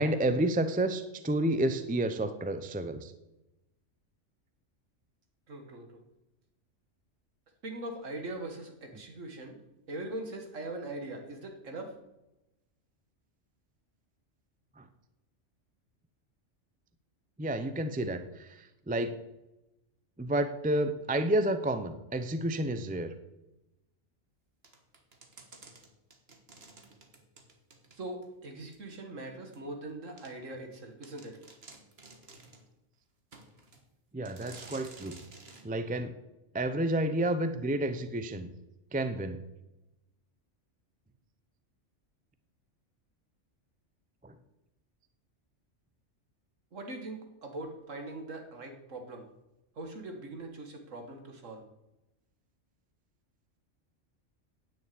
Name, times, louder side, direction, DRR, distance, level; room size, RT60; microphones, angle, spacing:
voice 1, 0.0-3.1 17.4-18.5 18.9-19.2 20.2-23.1 34.1-35.2 35.6-36.1 36.5-38.5 38.9-39.4 44.2-44.3, right 1 dB, 10° right, 10 dB, 0.4 m, -30 dB
voice 2, 5.5-5.9 7.6-9.6 9.9-11.9 27.9-31.4 46.7-49.2 49.8-51.6, right 2 dB, 80° right, 4 dB, 2.0 m, -41 dB
sound 1, 24.6-28.3 28.7-28.8 29.5-29.6 30.2-30.3 30.7-30.8 31.0-32.7 33.3-33.8 34.3-35.7, right 3 dB, 55° right, 1.7 m, -53 dB
9.7 x 7.1 x 8.5 m, 0.95 s
omnidirectional pair, 1.3 m